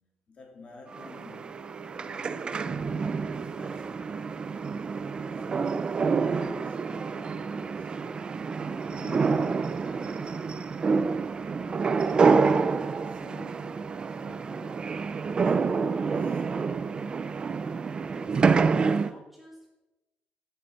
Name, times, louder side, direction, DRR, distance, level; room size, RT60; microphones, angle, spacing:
voice 1, 0.0-4.1 5.0-8.1 8.6-12.1 13.0-14.9 15.2-16.9, left 3 dB, 35° left, 2.8 m, -50 dB
sound 1, 0.9-19.1, right 5 dB, 25° right, 0.4 m, -28 dB
voice 2, 18.0-19.7, equal, 5° right, 2.0 m, -52 dB
12.0 x 7.3 x 6.6 m
cardioid pair, 170°, 4 cm